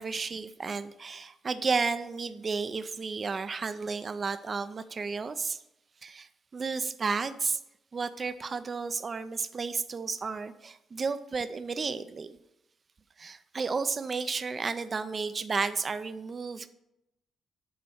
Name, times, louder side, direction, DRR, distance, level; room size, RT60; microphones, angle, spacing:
voice 1, 0.0-5.6 6.0-7.6 7.9-12.4 13.2-16.7, right 4 dB, 35° right, 12 dB, 0.5 m, -32 dB
7.0 x 4.2 x 6.4 m, 0.85 s
cardioid pair, 90°, 0 cm